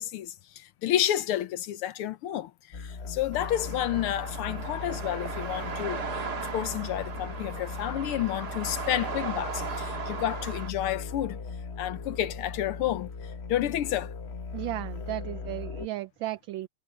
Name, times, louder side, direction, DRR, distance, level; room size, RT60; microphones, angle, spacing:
voice 1, 0.0-11.4 11.8-14.1, left 12 dB, 85° left, 1.8 m, -30 dB
sound 1, 2.7-15.9, left 4 dB, 40° left, 1.0 m, -38 dB
sound 2, 3.3-10.7, right 5 dB, 45° right, 2.5 m, -37 dB
voice 2, 14.5-16.7, right 16 dB, 75° right, 1.3 m, -35 dB
omnidirectional pair, 2.4 m